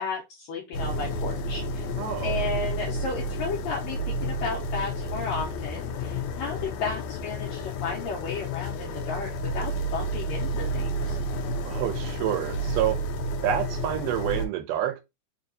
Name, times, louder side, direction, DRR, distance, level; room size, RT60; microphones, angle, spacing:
voice 1, 0.0-1.9 2.2-11.2, left 4 dB, 75° left, 1.7 m, -33 dB
sound 1, 0.7-14.5, equal, 90° left, 1.5 m, -31 dB
voice 2, 2.0-2.4 11.7-13.0 13.4-15.0, right 11 dB, 85° right, 2.2 m, -28 dB
4.8 x 2.8 x 2.6 m
omnidirectional pair, 3.7 m